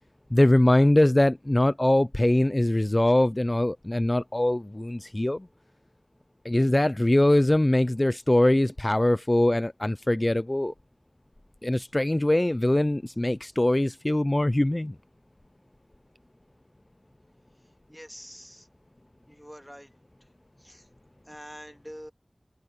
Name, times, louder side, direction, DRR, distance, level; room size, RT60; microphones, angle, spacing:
voice 1, 0.3-5.5 6.5-10.7 11.6-14.9, left 1 dB, 35° left, 0.4 m, -22 dB
voice 2, 17.9-18.7 19.3-19.9 20.6-20.9 21.3-22.1, equal, ahead, 2.0 m, -45 dB
wide cardioid pair, 45°, 0 cm